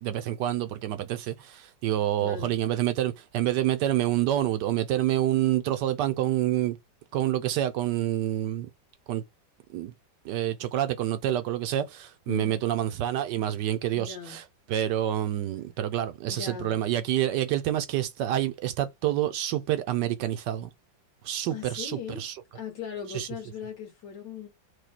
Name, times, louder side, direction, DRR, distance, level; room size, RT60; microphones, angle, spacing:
voice 1, 0.0-6.8 7.1-8.7 9.1-9.2 9.7-9.9 10.2-20.7 21.2-22.4 23.1-23.3, right 12 dB, 70° right, 1.1 m, -27 dB
voice 2, 2.2-2.6 12.3-12.6 13.9-14.4 16.3-16.8 21.5-22.2 22.5-24.5, left 7 dB, 65° left, 1.9 m, -39 dB
4.8 x 2.3 x 4.3 m
omnidirectional pair, 2.1 m